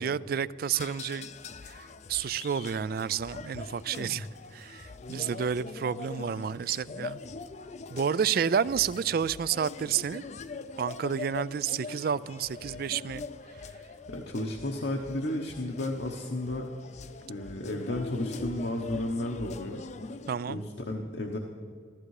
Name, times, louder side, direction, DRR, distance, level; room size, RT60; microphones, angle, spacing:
voice 1, 0.0-1.3 1.7-4.3 4.5-7.2 7.9-10.2 10.8-13.3 20.3-20.6, right 7 dB, 50° right, 19 dB, 0.3 m, -30 dB
sound 1, 0.7-20.4, left 4 dB, 40° left, 0.5 m, -43 dB
voice 2, 14.1-16.7 17.3-19.8 20.5-21.4, left 1 dB, 65° left, 1 dB, 1.0 m, -33 dB
14.5 x 13.5 x 4.8 m, 2.1 s
head